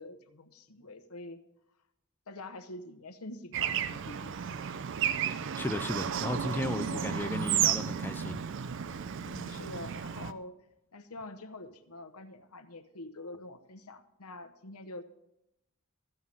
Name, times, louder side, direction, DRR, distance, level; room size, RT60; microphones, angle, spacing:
voice 1, 0.0-1.4 2.3-4.3 4.6-4.8 5.4-5.5 6.0-6.3 6.8-7.1 9.2-10.5 10.9-15.0, left 2 dB, 90° left, 1.0 m, -46 dB
Bird / Traffic noise roadway noise, 3.5-10.3, right 8 dB, 55° right, 0.4 m, -33 dB
voice 2, 5.6-8.4, left 1 dB, 10° left, 0.4 m, -35 dB
14.5 x 5.6 x 7.5 m
head